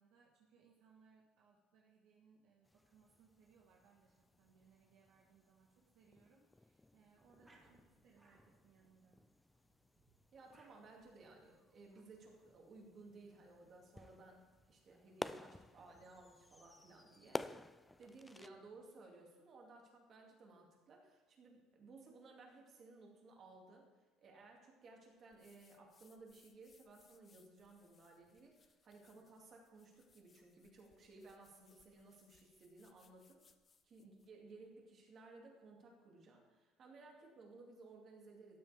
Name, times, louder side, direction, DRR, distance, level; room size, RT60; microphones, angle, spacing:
voice 1, 0.0-9.2, right 5 dB, 75° right, -2 dB, 1.5 m, -69 dB
sound 1, 2.7-18.5, left 2 dB, 10° left, 0.3 m, -53 dB
sound 2, 7.1-18.9, right 2 dB, 20° right, 2.3 m, -75 dB
voice 2, 10.3-17.4 18.0-23.9 24.2-33.4 33.8-38.6, right 3 dB, 45° right, 0 dB, 2.6 m, -59 dB
sound 3, 25.3-34.4, left 5 dB, 30° left, 0.7 m, -72 dB
12.5 x 9.3 x 3.6 m, 1.2 s
cardioid pair, 115°, 0 cm